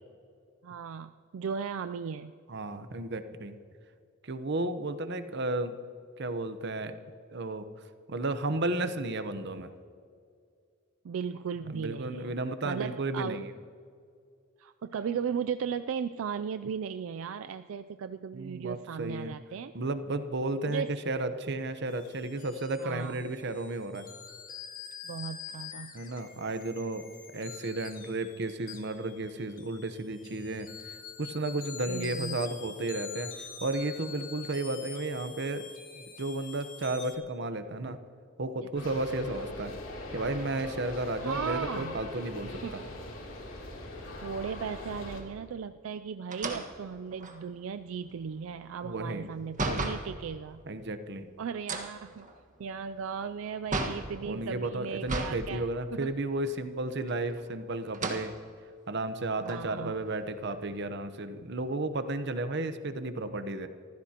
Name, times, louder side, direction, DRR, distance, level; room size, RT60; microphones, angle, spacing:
voice 1, 0.6-2.3 11.0-12.4 12.6-13.4 14.6-19.7 20.7-21.0 22.8-23.2 25.0-25.9 31.9-32.4 38.6-38.7 41.2-42.0 42.6-42.8 44.2-50.6 51.4-52.3 52.6-56.1 59.4-60.0 60.7-60.8, right 6 dB, 85° right, 11 dB, 0.4 m, -36 dB
voice 2, 2.5-3.6 4.2-5.7 6.2-7.0 7.3-7.7 8.1-9.7 11.7-13.5 18.3-19.3 19.7-24.0 25.9-27.0 27.3-35.7 36.0-38.0 38.4-39.7 40.1-42.8 48.8-49.3 50.7-51.3 54.3-58.3 58.9-63.7, right 2 dB, 60° right, 9 dB, 0.9 m, -33 dB
sound 1, 21.9-37.1, left 7 dB, 45° left, 1.6 m, -46 dB
sound 2, 38.8-45.2, left 2 dB, 80° left, 2.9 m, -41 dB
sound 3, 46.3-50.1 51.6-54.1 55.0-55.4 55.8-55.9 57.0-57.5 57.9-58.3 58.9-59.0 59.4-60.8, right 2 dB, 40° right, 1.5 m, -35 dB
25.0 x 15.0 x 2.9 m, 2.3 s
head